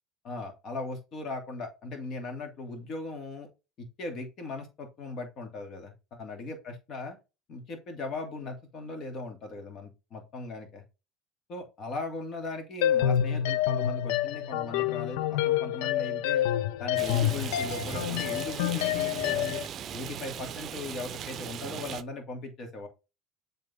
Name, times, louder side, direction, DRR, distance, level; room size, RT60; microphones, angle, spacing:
voice 1, 0.2-3.5 3.8-7.2 7.5-10.8 11.5-16.5 16.8-19.6 19.9-22.9, left 3 dB, 50° left, 4 dB, 2.6 m, -38 dB
sound 1, 12.8-19.7, left 11 dB, 75° left, 0.5 m, -28 dB
Rain, 17.0-22.0, right 8 dB, 45° right, 0.6 m, -38 dB
7.5 x 4.0 x 3.7 m, 0.28 s
hypercardioid pair, 75°, 0 cm